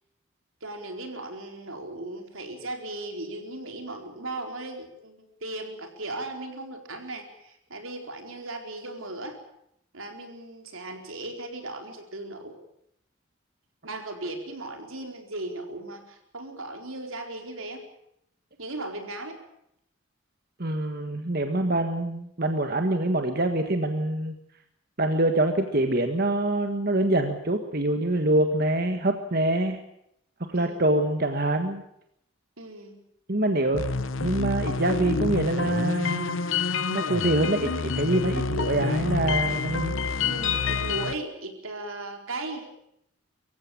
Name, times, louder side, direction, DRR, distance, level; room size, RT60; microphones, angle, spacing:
voice 1, 0.6-9.4 9.9-12.5 13.8-17.8 18.6-19.4 30.5-30.9 32.6-33.0 40.2-42.7, right 2 dB, 85° right, 4 dB, 4.4 m, -37 dB
voice 2, 20.6-24.3 25.0-29.8 30.5-31.8 33.3-33.8 34.2-36.4 36.9-39.9, right 1 dB, 45° right, 6 dB, 1.6 m, -25 dB
sound 1, 33.7-41.1, left 4 dB, 75° left, 0.9 m, -28 dB
24.5 x 15.5 x 8.8 m, 0.75 s
head